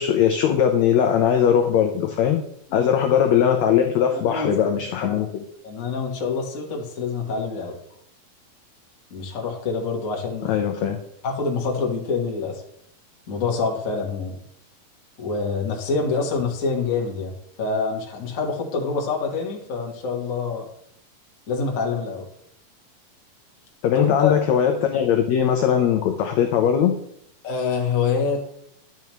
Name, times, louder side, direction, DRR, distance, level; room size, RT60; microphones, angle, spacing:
voice 1, 0.0-2.4 2.7-5.4 10.4-11.0 23.8-27.0, left 8 dB, 85° left, 5 dB, 1.5 m, -20 dB
voice 2, 4.1-4.5 5.0-5.3 5.6-7.7 9.1-10.6 11.2-12.6 13.3-14.3 15.2-17.3 17.6-20.6 21.5-22.2 23.9-24.3 27.4-28.5, left 4 dB, 65° left, 0 dB, 0.8 m, -26 dB
10.5 x 6.9 x 3.1 m, 0.71 s
omnidirectional pair, 4.0 m